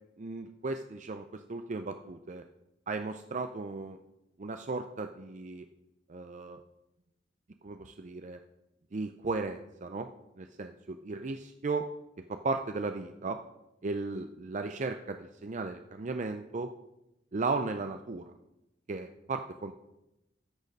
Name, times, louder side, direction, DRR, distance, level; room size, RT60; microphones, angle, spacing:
voice 1, 0.2-2.4 2.9-4.0 4.4-5.7 6.1-6.6 7.6-8.4 8.9-10.1 10.4-11.9 12.3-13.4 13.8-16.7 17.3-18.3 18.9-19.7, right 3 dB, 45° right, 7 dB, 0.5 m, -35 dB
13.0 x 6.6 x 5.3 m, 0.92 s
head